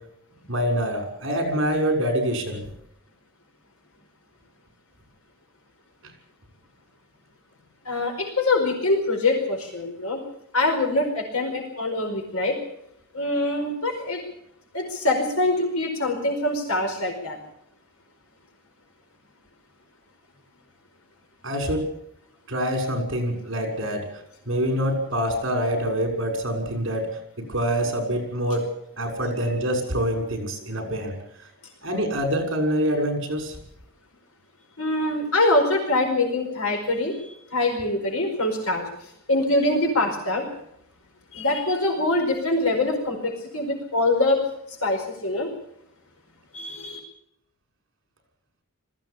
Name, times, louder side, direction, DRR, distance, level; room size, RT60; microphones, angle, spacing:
voice 1, 0.5-2.6 21.4-21.9 22.5-27.1 27.5-28.7 29.0-31.1 31.8-33.6, equal, 60° right, 4 dB, 6.2 m, -25 dB
voice 2, 7.8-10.2 10.5-12.6 13.1-14.2 14.7-17.4 34.8-38.9 39.3-40.5 41.3-44.4 44.8-45.5 46.5-47.0, left 2 dB, 80° left, 2 dB, 4.8 m, -24 dB
20.5 x 15.5 x 8.7 m, 0.75 s
head